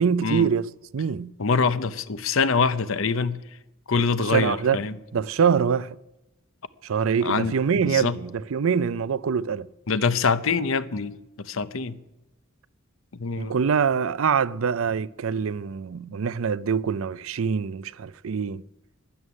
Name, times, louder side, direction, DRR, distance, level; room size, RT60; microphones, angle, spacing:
voice 1, 0.0-1.3 4.3-4.8 5.1-6.0 6.8-9.7 13.4-18.6, right 6 dB, 70° right, 0.4 m, -24 dB
voice 2, 1.4-3.4 3.9-4.9 7.2-7.5 7.8-8.2 9.9-11.9 13.2-13.6, left 4 dB, 70° left, 0.8 m, -24 dB
13.0 x 11.0 x 9.8 m
head